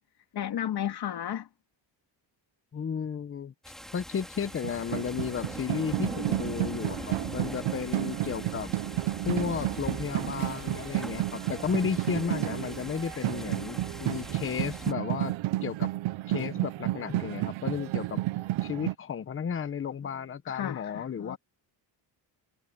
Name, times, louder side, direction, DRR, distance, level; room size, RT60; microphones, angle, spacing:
voice 1, 0.3-1.5 20.4-21.4, left 10 dB, 55° left, 3.4 m, -33 dB
voice 2, 2.7-3.5 3.9-8.7 9.2-15.3 15.6-15.9 16.3-18.2 18.6-21.4, left 7 dB, 25° left, 1.1 m, -33 dB
sound 1, 3.6-14.9, equal, ahead, 5.4 m, -42 dB
sound 2, 4.4-18.9, right 17 dB, 80° right, 0.8 m, -32 dB
cardioid pair, 145°, 46 cm